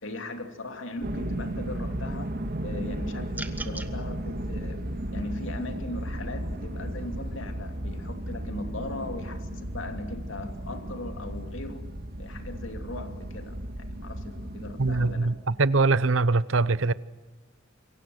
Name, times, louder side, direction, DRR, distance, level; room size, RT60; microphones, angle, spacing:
voice 1, 0.0-11.9 12.2-15.3, left 2 dB, 70° left, 2.8 m, -39 dB
sound 1, 1.0-15.1, right 1 dB, 50° right, 2.0 m, -35 dB
sound 2, 3.3-3.9, right 2 dB, 10° right, 1.5 m, -37 dB
voice 2, 14.8-16.9, right 3 dB, 75° right, 0.8 m, -23 dB
28.0 x 23.0 x 7.9 m
head